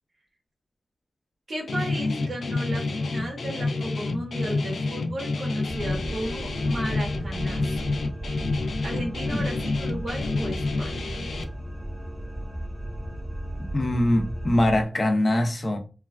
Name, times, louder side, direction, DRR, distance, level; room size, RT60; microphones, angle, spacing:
voice 1, 1.5-7.8 8.8-11.2, right 1 dB, 70° right, 1.3 m, -34 dB
Guitar, 1.7-11.4, left 3 dB, 80° left, 0.4 m, -28 dB
sound 1, 5.6-14.8, equal, 50° right, 1.0 m, -35 dB
voice 2, 13.7-15.8, left 1 dB, 50° left, 0.7 m, -23 dB
3.2 x 2.3 x 2.2 m
cardioid pair, 40°, 0 cm